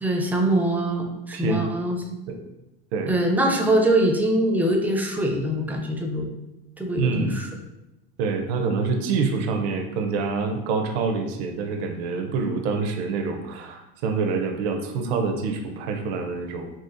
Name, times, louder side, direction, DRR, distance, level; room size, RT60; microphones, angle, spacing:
voice 1, 0.0-2.2 3.1-6.3 6.8-7.5, right 1 dB, 5° right, 2 dB, 0.4 m, -23 dB
voice 2, 1.3-1.7 2.3-2.4 2.9-3.1 7.0-7.4 8.2-16.7, right 4 dB, 75° right, 5 dB, 0.6 m, -26 dB
4.1 x 2.4 x 2.5 m, 0.95 s
supercardioid pair, 110°, 32 cm